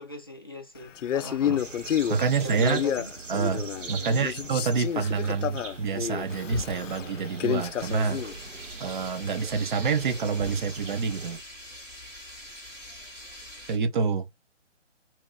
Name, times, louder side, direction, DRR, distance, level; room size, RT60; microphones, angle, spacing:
voice 1, 0.0-1.6 2.2-3.1 3.9-4.3, left 1 dB, 20° left, 0.4 m, -40 dB
Male speech man speaking, 1.0-3.9 4.2-8.3, left 9 dB, 80° left, 0.5 m, -30 dB
sound 1, 1.6-11.4, right 4 dB, 80° right, 1.2 m, -41 dB
voice 2, 2.1-2.9 3.3-8.2 8.8-11.4 13.7-14.3, right 5 dB, 40° right, 0.7 m, -27 dB
sound 2, 7.8-13.8, left 1 dB, 10° right, 1.1 m, -44 dB
3.0 x 2.8 x 3.8 m
figure-of-eight pair, 150°, 37 cm